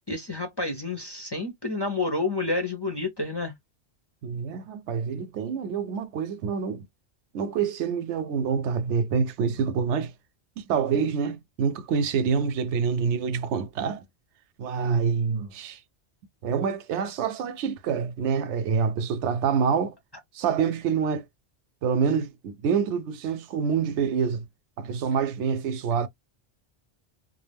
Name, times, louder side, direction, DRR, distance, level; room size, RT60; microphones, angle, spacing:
voice 1, 0.1-3.5, left 3 dB, 30° left, 0.5 m, -29 dB
voice 2, 4.2-6.8 7.3-10.1 10.6-14.0 14.6-15.8 16.4-20.0 20.3-21.3 21.8-24.4 24.8-26.1, right 6 dB, 85° right, 0.9 m, -26 dB
2.4 x 2.0 x 3.3 m
omnidirectional pair, 1.1 m